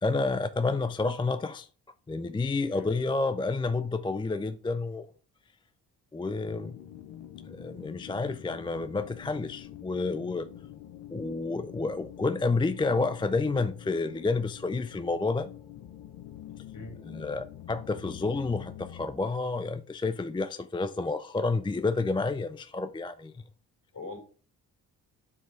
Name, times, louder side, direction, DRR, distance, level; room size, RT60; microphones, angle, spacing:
voice 1, 0.0-1.7 2.1-5.1 6.1-6.8 7.5-10.5 11.1-15.5 17.1-23.4, left 3 dB, 10° left, 0.4 m, -30 dB
voice 2, 2.7-2.9 16.7-17.0 23.9-24.2, left 2 dB, 50° left, 4.1 m, -42 dB
sound 1, 6.4-19.1, left 11 dB, 70° left, 0.9 m, -46 dB
6.0 x 4.9 x 4.6 m
supercardioid pair, 50°, 42 cm